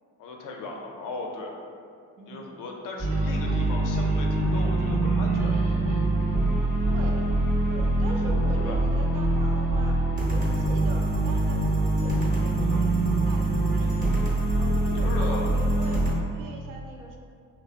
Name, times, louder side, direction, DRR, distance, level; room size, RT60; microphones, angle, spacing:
voice 1, 0.2-1.5 2.3-5.9 8.6-8.9 9.1-9.3 12.6-12.9 15.0-15.5, left 3 dB, 55° left, 1 dB, 0.5 m, -37 dB
voice 2, 2.2-2.5 6.9-7.3 7.7-10.0 10.3-14.2 14.6-16.0 16.3-17.2, right 3 dB, 55° right, 0 dB, 0.4 m, -42 dB
sound 1, 3.0-16.1, right 2 dB, 20° right, 0.8 m, -24 dB
2.7 x 2.0 x 2.4 m, 2.3 s
supercardioid pair, 75°, 39 cm